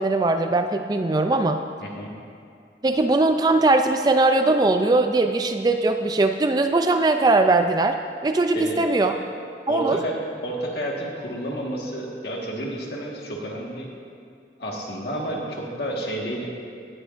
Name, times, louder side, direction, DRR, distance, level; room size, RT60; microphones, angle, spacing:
voice 1, 0.0-1.6 2.8-8.0 8.2-9.1 9.7-10.0, right 2 dB, 20° right, 6 dB, 0.3 m, -20 dB
voice 2, 1.8-2.1 8.5-9.2 9.7-10.1 10.4-13.9 14.6-16.5, right 1 dB, 65° left, -2 dB, 1.6 m, -30 dB
17.5 x 9.7 x 2.6 m, 2.3 s
head